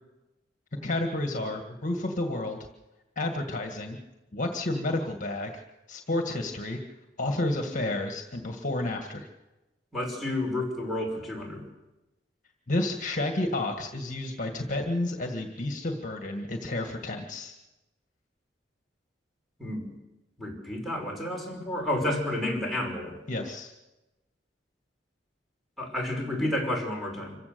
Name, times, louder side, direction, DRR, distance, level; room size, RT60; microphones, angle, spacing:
voice 1, 0.8-2.7 3.1-4.0 4.3-5.6 5.9-6.8 7.2-9.3 12.7-17.5 23.3-23.7, left 2 dB, 45° left, 4 dB, 1.8 m, -30 dB
voice 2, 9.9-11.6 19.6-19.9 20.4-23.1 25.8-27.4, left 1 dB, ahead, 0 dB, 5.5 m, -30 dB
26.0 x 16.0 x 6.9 m, 1.0 s
head